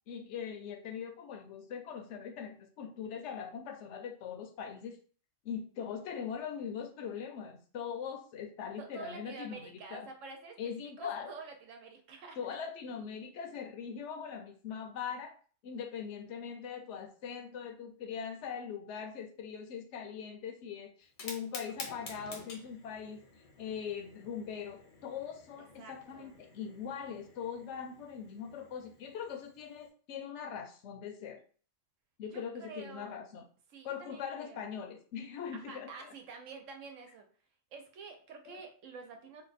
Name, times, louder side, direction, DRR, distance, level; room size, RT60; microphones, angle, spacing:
voice 1, 0.1-5.0 5.4-10.1 10.6-11.3 12.4-15.3 15.6-23.2 23.6-31.4 32.2-33.4 33.8-36.1 38.5-38.6, left 7 dB, 65° left, 5 dB, 0.9 m, -41 dB
voice 2, 8.8-10.6 11.0-12.4 25.8-26.4 32.3-33.2 33.7-34.6 35.5-37.3 37.7-39.4, right 4 dB, 70° right, 4 dB, 1.0 m, -48 dB
Fire, 21.0-29.9, left 3 dB, 80° left, 1.2 m, -51 dB
2.7 x 2.2 x 4.0 m, 0.42 s
omnidirectional pair, 1.4 m